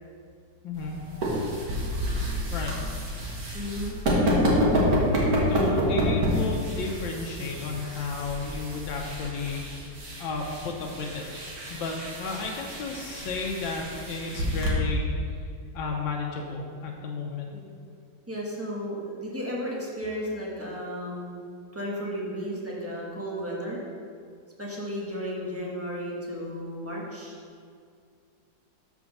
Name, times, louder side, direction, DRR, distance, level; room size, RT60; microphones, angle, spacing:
voice 1, 0.6-1.0 2.5-2.8 5.5-9.6 10.2-11.2 11.7-15.1 15.7-17.5, left 3 dB, 85° left, 0 dB, 1.5 m, -33 dB
sound 1, 0.7-14.7, equal, 55° right, 1.7 m, -28 dB
voice 2, 3.5-4.0 17.5-17.7 18.3-21.4 21.7-23.8 24.6-27.4, equal, 10° right, -4 dB, 0.9 m, -34 dB
6.1 x 4.9 x 6.4 m, 2.2 s
omnidirectional pair, 2.0 m